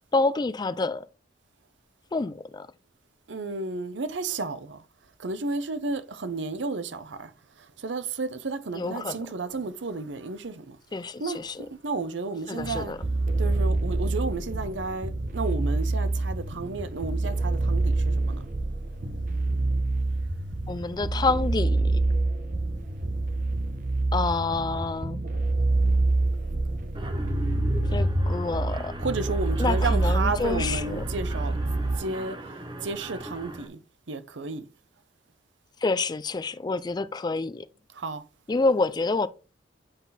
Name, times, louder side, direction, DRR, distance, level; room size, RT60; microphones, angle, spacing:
voice 1, 0.1-1.1 2.1-2.7 8.7-9.2 10.9-11.7 12.5-13.0 20.7-22.0 24.1-25.2 27.9-28.9 29.6-31.0 35.8-37.7 38.5-39.3, left 3 dB, 25° left, 0.4 m, -28 dB
voice 2, 3.3-4.8 5.2-7.3 7.6-10.8 11.2-12.9 13.4-18.4 29.0-32.4 32.8-33.8 34.1-34.6 37.9-38.2, right 3 dB, 85° right, 0.7 m, -32 dB
sound 1, 12.6-32.0, right 2 dB, 50° right, 1.0 m, -27 dB
Mechanisms, 26.9-33.7, left 1 dB, 25° right, 0.8 m, -34 dB
7.9 x 4.0 x 4.0 m
head